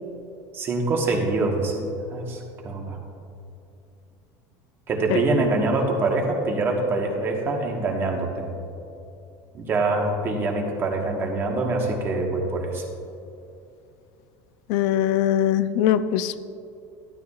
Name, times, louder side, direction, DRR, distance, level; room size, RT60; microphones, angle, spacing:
voice 1, 0.5-3.0 4.9-8.5 9.5-12.8, right 2 dB, 25° right, 1 dB, 1.2 m, -25 dB
voice 2, 14.7-16.3, left 11 dB, 60° left, 14 dB, 0.4 m, -21 dB
12.5 x 12.5 x 2.4 m, 2.6 s
cardioid pair, 165°, 9 cm